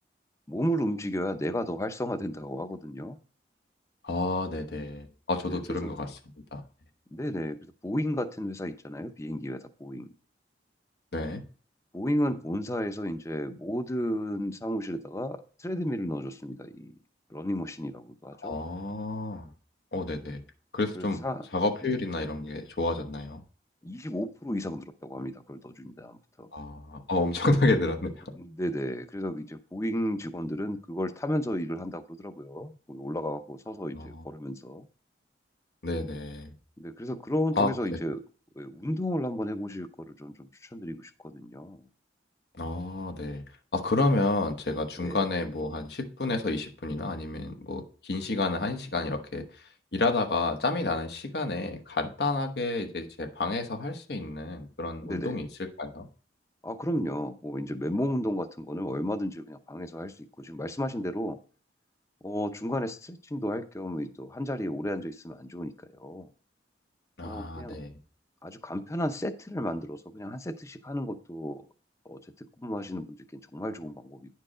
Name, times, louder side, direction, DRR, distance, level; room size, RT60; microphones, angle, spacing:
voice 1, 0.5-3.2 5.5-5.9 7.1-10.1 11.9-17.0 17.3-18.6 20.9-21.5 21.8-21.9 23.8-26.5 28.3-34.9 36.8-38.2 38.6-41.8 45.0-45.3 55.0-55.4 56.6-61.4 62.2-66.3 67.2-67.8 68.4-71.6 72.1-74.3, equal, 15° left, 10 dB, 0.6 m, -33 dB
voice 2, 4.0-6.2 6.5-6.6 11.1-11.4 18.4-19.5 19.9-20.4 20.7-21.2 21.5-23.4 26.5-28.3 33.9-34.2 35.8-36.5 37.6-37.7 42.6-43.4 43.7-56.1 67.2-67.9, left 2 dB, 65° left, 6 dB, 1.0 m, -30 dB
9.9 x 4.6 x 4.9 m, 0.41 s
head